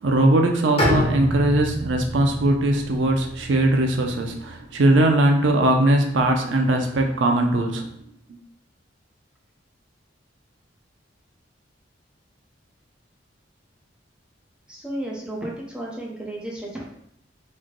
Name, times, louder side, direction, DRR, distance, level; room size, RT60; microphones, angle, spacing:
voice 1, 0.0-7.9, right 1 dB, 85° right, 3 dB, 0.5 m, -20 dB
Bowed string instrument, 0.8-4.7, equal, 35° left, 1.1 m, -28 dB
voice 2, 14.7-16.8, right 1 dB, 5° right, -4 dB, 0.7 m, -33 dB
3.2 x 2.2 x 3.7 m, 0.71 s
head